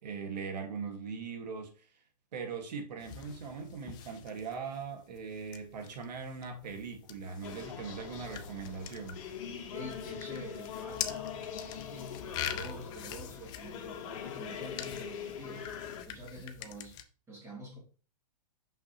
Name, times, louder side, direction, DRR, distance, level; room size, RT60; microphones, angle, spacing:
voice 1, 0.0-1.9 2.3-9.3 16.4-16.5, right 5 dB, 80° right, 1.8 m, -40 dB
sound 1, 3.0-17.0, left 9 dB, 20° left, 0.4 m, -45 dB
sound 2, 7.4-16.0, left 8 dB, 50° left, 1.3 m, -42 dB
voice 2, 9.7-15.7 16.1-17.0 17.3-17.8, right 1 dB, 15° right, 2.7 m, -47 dB
6.0 x 5.8 x 2.9 m
hypercardioid pair, 155°, 21 cm